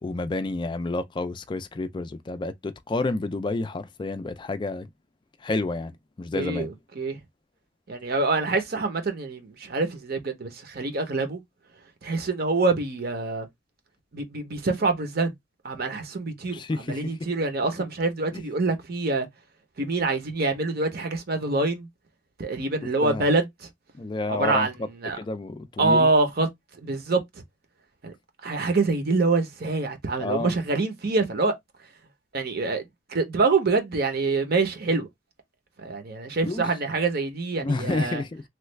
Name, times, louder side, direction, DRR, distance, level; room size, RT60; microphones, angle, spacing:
voice 1, 0.0-4.9 5.4-5.9 6.2-6.7 16.5-17.1 18.3-18.5 23.0-23.3 23.9-24.9 25.2-26.1 30.2-30.5 36.5-36.6 37.6-38.4, left 2 dB, 25° left, 0.3 m, -29 dB
voice 2, 6.3-7.2 7.9-11.4 12.0-13.5 14.1-15.3 15.6-16.6 16.9-19.3 19.8-21.9 22.4-23.7 24.3-24.7 25.0-25.2 25.8-26.5 26.8-27.2 28.0-28.1 28.4-31.6 32.3-32.8 33.1-35.1 35.8-38.2, right 3 dB, 50° right, 0.8 m, -25 dB
3.1 x 2.4 x 3.1 m
head